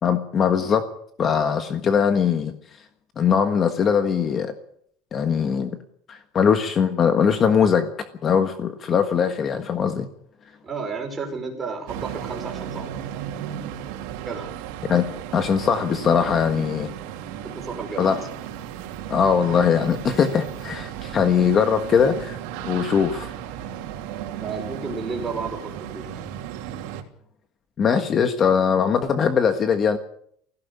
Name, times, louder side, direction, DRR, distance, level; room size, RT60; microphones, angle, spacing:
voice 1, 0.0-0.9 1.2-2.5 3.2-4.5 5.1-5.8 6.1-7.9 8.2-10.1 14.9-15.0 15.3-16.9 18.0-18.2 19.1-22.4 22.6-23.3 27.8-30.0, left 7 dB, 30° left, 7 dB, 1.5 m, -21 dB
voice 2, 10.6-13.2 14.2-14.5 17.4-18.1 24.4-26.2, right 4 dB, 15° right, 2 dB, 5.6 m, -32 dB
sound 1, 11.9-27.0, right 10 dB, 75° right, 3.2 m, -35 dB
18.5 x 16.5 x 8.4 m, 0.67 s
cardioid pair, 155°, 0 cm